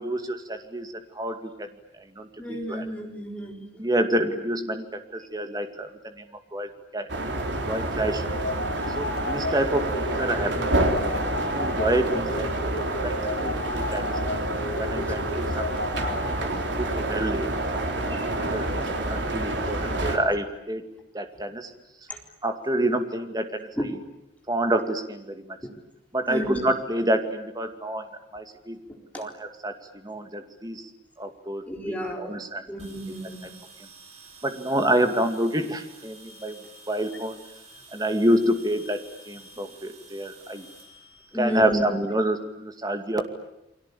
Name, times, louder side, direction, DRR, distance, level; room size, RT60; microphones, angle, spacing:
voice 1, 0.0-1.7 2.2-2.8 3.8-5.9 6.2-6.3 6.5-7.1 7.7-8.3 8.9-10.7 11.5-14.4 14.8-16.3 16.8-17.8 18.1-18.2 18.5-18.7 19.1-20.8 21.1-21.7 22.4-23.7 24.5-25.6 26.1-28.1 28.3-28.8 29.2-30.8 31.2-31.7 32.2-32.7 34.4-36.6 36.9-37.4 37.9-40.7 41.4-43.2, right 1 dB, 20° right, 7 dB, 2.4 m, -28 dB
voice 2, 2.4-3.7 8.8-8.9 18.0-18.5 18.8-18.9 19.2-19.3 22.1-22.2 23.7-23.9 25.6-25.7 26.3-26.6 29.1-29.2 31.6-32.3 32.7-33.5 41.3-41.8, equal, 10° left, 1 dB, 4.2 m, -32 dB
sound 1, 7.1-20.2, right 1 dB, 75° right, 3.7 m, -28 dB
sound 2, 8.3-16.3, left 1 dB, 55° left, 6.5 m, -33 dB
sound 3, 32.8-42.0, right 2 dB, 40° right, 6.0 m, -50 dB
29.5 x 23.5 x 8.5 m, 0.90 s
head